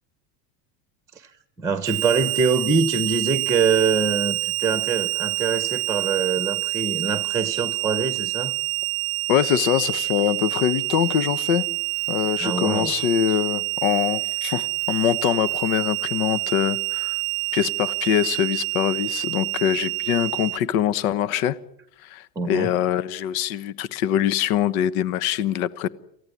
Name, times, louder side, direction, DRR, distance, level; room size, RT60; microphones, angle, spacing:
voice 1, 1.6-8.5 12.4-12.9 22.4-22.7, right 5 dB, 5° right, 11 dB, 1.0 m, -24 dB
Harmonica, 1.8-20.6, right 22 dB, 35° right, 0.9 m, -27 dB
voice 2, 9.3-11.7 12.1-17.2 17.5-21.6 22.0-25.9, left 10 dB, 65° left, 16 dB, 1.2 m, -23 dB
28.0 x 16.0 x 9.8 m, 0.76 s
supercardioid pair, 165°, 45 cm